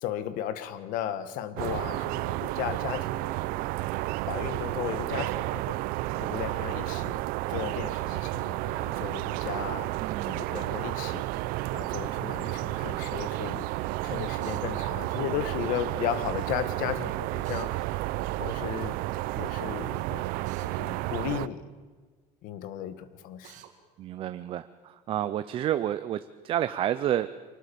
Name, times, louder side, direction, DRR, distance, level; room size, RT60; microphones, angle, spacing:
voice 1, 0.0-3.3 4.3-5.8 6.2-7.2 7.5-9.9 10.3-11.2 11.7-17.7 18.4-19.0 19.3-20.3 20.6-21.7 22.4-23.6, left 10 dB, 65° left, 13 dB, 1.5 m, -35 dB
sound 1, 1.6-21.5, right 18 dB, 75° right, 0.6 m, -31 dB
voice 2, 10.0-10.4 24.0-27.4, right 11 dB, 35° right, 12 dB, 0.6 m, -30 dB
Drill, 14.4-14.7 17.4-17.7 20.5-20.7 23.4-23.7, right 11 dB, 55° right, 2.3 m, -49 dB
24.0 x 19.0 x 7.0 m, 1.4 s
cardioid pair, 170°, 15 cm